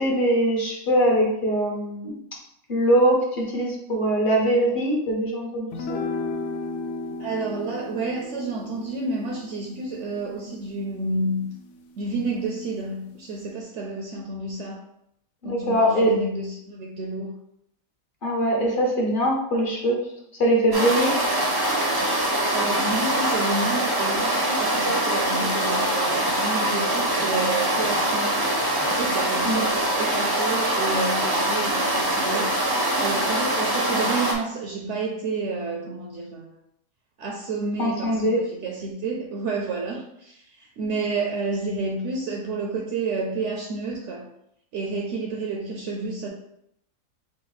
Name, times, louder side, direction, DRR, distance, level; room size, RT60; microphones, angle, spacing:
voice 1, 0.0-2.1 2.7-6.0 15.4-16.1 18.2-20.0 20.4-21.1 29.4-29.6 37.8-38.4, right 1 dB, 40° left, -2 dB, 1.0 m, -22 dB
sound 1, 5.7-12.3, left 3 dB, 65° left, 0.8 m, -35 dB
voice 2, 7.2-11.5 12.0-14.8 15.4-17.3 22.5-28.6 28.9-32.6 33.0-36.6 37.2-44.3 44.7-46.3, right 3 dB, 65° right, 1 dB, 0.8 m, -30 dB
sound 2, 20.7-34.3, right 1 dB, 30° right, 0.4 m, -23 dB
4.9 x 2.2 x 3.9 m, 0.76 s
omnidirectional pair, 1.4 m